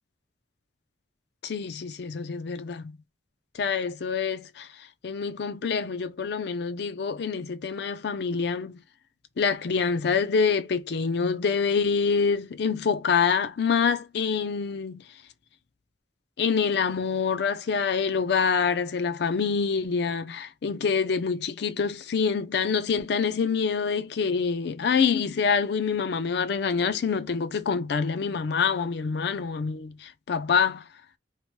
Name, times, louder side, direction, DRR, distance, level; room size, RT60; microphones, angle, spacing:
voice 1, 1.4-3.0 3.5-4.7 5.0-8.7 9.4-15.0 16.4-30.8, left 5 dB, 60° left, 0.4 m, -26 dB
2.9 x 2.1 x 3.1 m
head